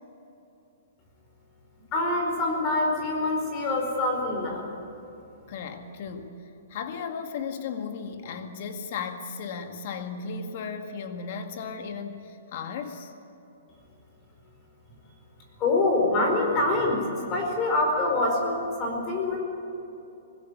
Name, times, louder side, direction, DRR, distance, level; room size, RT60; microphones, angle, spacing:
voice 1, 1.9-4.7 15.6-19.4, left 2 dB, 20° left, 1 dB, 4.7 m, -25 dB
voice 2, 5.5-6.4 6.7-13.1, left 5 dB, 45° left, 6 dB, 2.0 m, -35 dB
20.5 x 16.0 x 9.8 m, 2.9 s
hypercardioid pair, 160°, 0 cm